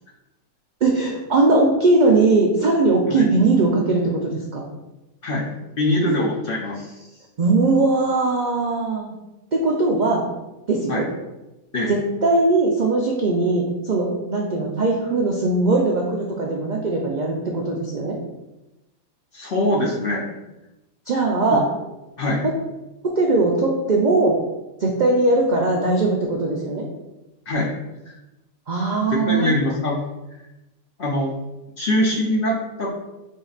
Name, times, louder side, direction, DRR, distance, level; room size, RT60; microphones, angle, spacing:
voice 1, 0.8-4.6 6.1-6.2 7.4-9.1 9.5-10.2 10.7-11.1 11.9-18.2 21.1-21.6 23.0-24.4 24.8-26.8 28.7-29.6, right 2 dB, 80° right, -1 dB, 0.4 m, -20 dB
voice 2, 5.8-6.9 10.9-11.0 11.7-11.9 19.3-20.3 22.2-22.4 27.5-27.7 29.3-30.0 31.0-31.3 31.8-32.9, left 1 dB, 55° left, -3 dB, 0.6 m, -22 dB
5.2 x 3.7 x 2.4 m, 0.98 s
omnidirectional pair, 1.5 m